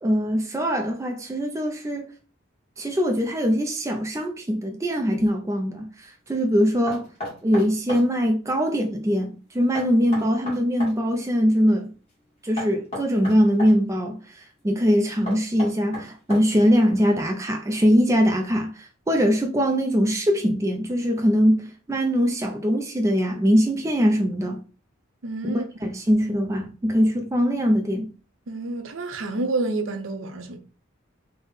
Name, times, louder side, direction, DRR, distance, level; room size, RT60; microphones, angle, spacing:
voice 1, 0.0-2.1 2.8-7.0 7.4-11.9 12.4-24.6 25.4-28.1, equal, 15° right, 0.3 m, -22 dB
Knock, 6.9-8.1 9.8-11.0 12.6-13.8 15.3-16.7, left 1 dB, 30° left, 1.5 m, -34 dB
voice 2, 25.2-25.9 28.5-30.6, right 2 dB, 75° right, 0.6 m, -29 dB
3.4 x 2.1 x 3.9 m
head